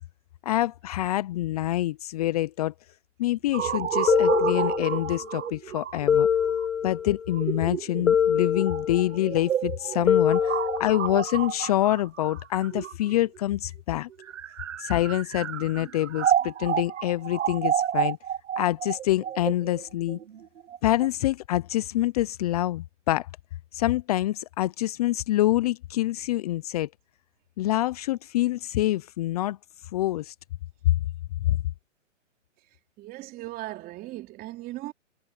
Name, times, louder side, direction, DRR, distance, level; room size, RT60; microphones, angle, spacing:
voice 1, 0.4-2.7 3.2-6.3 6.8-14.1 14.8-18.2 18.6-20.2 20.8-23.3 23.7-26.9 27.6-29.6 29.9-30.3 30.9-31.0 31.4-31.6, left 15 dB, 30° left, 0.6 m, -26 dB
sound 1, 3.5-13.4 14.1-21.1, right 9 dB, 70° right, 1.1 m, -30 dB
sound 2, 4.1-5.2 6.1-7.3 8.1-9.2 10.1-11.3, left 8 dB, 90° left, 0.9 m, -24 dB
voice 2, 33.0-34.9, right 17 dB, 25° right, 3.3 m, -38 dB
hypercardioid pair, 140°, 38 cm